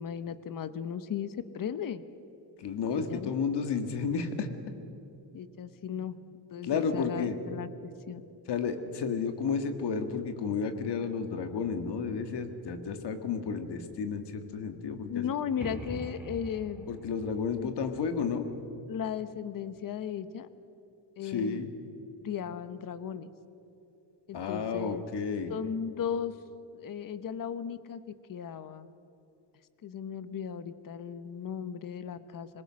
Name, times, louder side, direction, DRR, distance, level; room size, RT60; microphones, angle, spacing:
voice 1, 0.0-2.0 2.9-3.3 5.3-6.1 6.5-8.2 15.1-16.8 17.6-17.7 18.9-20.5 21.2-21.6 22.2-23.3 24.3-25.0 25.5-26.4 26.7-28.0 28.3-28.9 29.8-32.6, left 8 dB, 45° left, 13 dB, 1.0 m, -36 dB
voice 2, 2.6-4.5 5.9-6.0 6.6-7.4 8.5-15.3 15.6-16.0 16.9-18.5 21.2-21.7 24.3-25.5, left 5 dB, 60° left, 8 dB, 1.9 m, -32 dB
sound 1, 15.6-19.3, right 1 dB, 5° right, 2.4 m, -45 dB
25.5 x 22.0 x 6.4 m, 2.8 s
cardioid pair, 170°, 45 cm